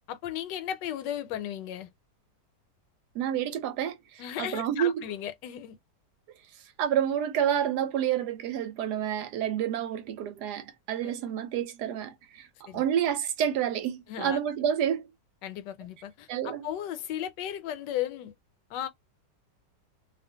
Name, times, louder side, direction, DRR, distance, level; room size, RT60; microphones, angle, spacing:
voice 1, 0.1-1.9 4.2-5.8 11.0-11.1 12.7-12.8 14.1-14.4 15.4-18.3 18.7-18.9, left 11 dB, 80° left, 1.2 m, -35 dB
voice 2, 3.1-5.0 6.8-15.1 16.3-16.7, right 9 dB, 75° right, 1.1 m, -29 dB
2.7 x 2.4 x 2.6 m
omnidirectional pair, 1.9 m